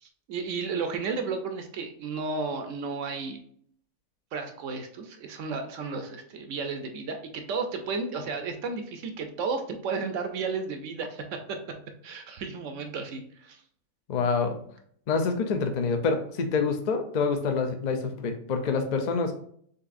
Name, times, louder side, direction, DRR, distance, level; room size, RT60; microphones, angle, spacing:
voice 1, 0.0-3.4 4.3-11.8 12.0-13.6, right 4 dB, 70° right, 6 dB, 0.9 m, -33 dB
voice 2, 14.1-14.6 15.1-19.4, left 4 dB, 55° left, 6 dB, 0.5 m, -27 dB
6.5 x 2.7 x 2.5 m, 0.62 s
omnidirectional pair, 1.4 m